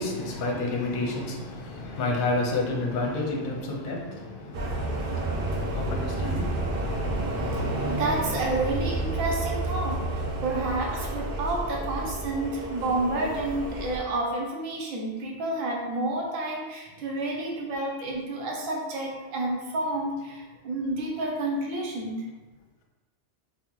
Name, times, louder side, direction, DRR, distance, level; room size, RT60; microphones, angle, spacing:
voice 1, 0.0-6.7 7.1-7.2 7.4-7.8 17.8-17.9, left 2 dB, 55° left, 0 dB, 0.7 m, -30 dB
sound 1, 4.5-14.0, right 2 dB, 60° right, 0.6 m, -30 dB
voice 2, 7.8-22.3, right 2 dB, 90° right, -1 dB, 1.1 m, -30 dB
4.1 x 2.2 x 3.0 m, 1.2 s
omnidirectional pair, 1.3 m